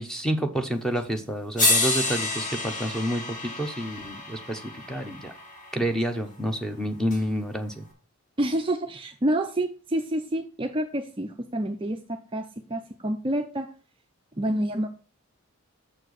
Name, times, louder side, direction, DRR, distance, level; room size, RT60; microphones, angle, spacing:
voice 1, 0.0-5.3 5.7-7.8, equal, 5° left, 5 dB, 0.8 m, -29 dB
sound 1, 1.0-1.1 1.6-5.8 7.1-7.2, left 2 dB, 35° left, 2.1 m, -28 dB
voice 2, 8.4-13.7 14.4-14.9, right 1 dB, 25° right, 5 dB, 0.5 m, -28 dB
7.1 x 4.4 x 6.5 m, 0.38 s
head